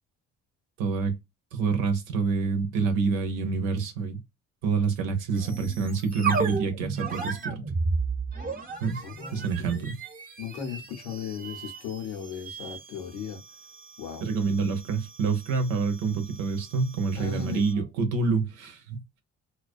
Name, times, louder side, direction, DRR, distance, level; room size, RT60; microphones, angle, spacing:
voice 1, 0.8-1.1 1.5-4.2 4.6-7.6 8.8-9.0 9.3-9.9 14.2-19.2, right 4 dB, 85° right, 0.8 m, -27 dB
sound 1, 5.3-17.8, right 4 dB, 25° right, 0.9 m, -35 dB
voice 2, 9.0-9.8 10.4-13.4 14.0-14.3 17.1-17.6, left 7 dB, 85° left, 0.9 m, -36 dB
2.3 x 2.3 x 2.4 m
supercardioid pair, 65°, 32 cm